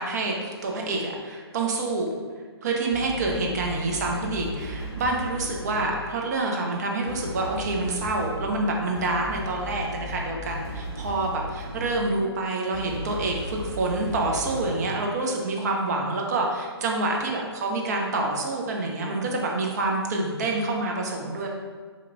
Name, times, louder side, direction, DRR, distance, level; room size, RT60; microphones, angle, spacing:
voice 1, 0.0-2.1 2.6-21.5, right 2 dB, 40° right, 0 dB, 0.6 m, -27 dB
sound 1, 2.9-6.2 7.1-12.2 12.7-14.9, left 1 dB, 10° left, 0.9 m, -36 dB
4.2 x 2.9 x 2.5 m, 1.5 s
hypercardioid pair, 150°, 14 cm